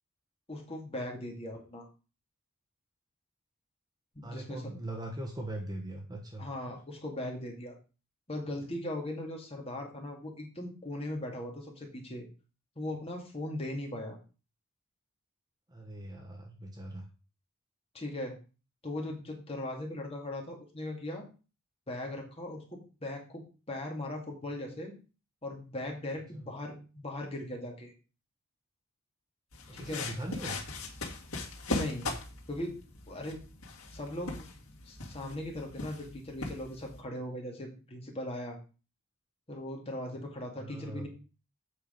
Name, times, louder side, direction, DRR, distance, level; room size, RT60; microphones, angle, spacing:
voice 1, 0.5-1.9 4.1-4.6 6.4-7.8 8.3-12.3 12.8-14.2 17.9-18.3 18.8-21.3 21.9-24.9 25.4-27.9 29.7-30.0 31.7-32.1 32.5-32.7 33.1-33.4 33.9-34.4 34.9-38.6 39.5-41.1, left 1 dB, 25° left, 1 dB, 2.4 m, -39 dB
voice 2, 4.2-6.8 15.7-17.1 26.3-26.5 29.7-30.6 40.1-40.2 40.6-41.1, right 1 dB, 20° right, 2 dB, 1.1 m, -41 dB
sound 1, 29.5-37.0, left 2 dB, 70° left, 2.1 m, -40 dB
7.9 x 5.6 x 5.3 m, 0.34 s
head